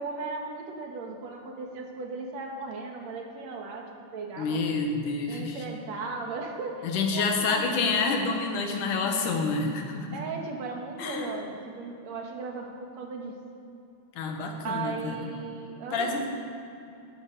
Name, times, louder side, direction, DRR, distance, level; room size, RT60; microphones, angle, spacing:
voice 1, 0.0-4.6 5.3-6.9 7.1-7.9 10.1-13.4 14.6-16.3, right 4 dB, 60° right, 2 dB, 2.6 m, -37 dB
voice 2, 4.4-5.6 6.8-10.2 11.0-11.4 14.2-15.3 15.9-16.3, left 4 dB, 75° left, 3 dB, 2.9 m, -28 dB
13.5 x 11.5 x 6.8 m, 2.6 s
omnidirectional pair, 3.7 m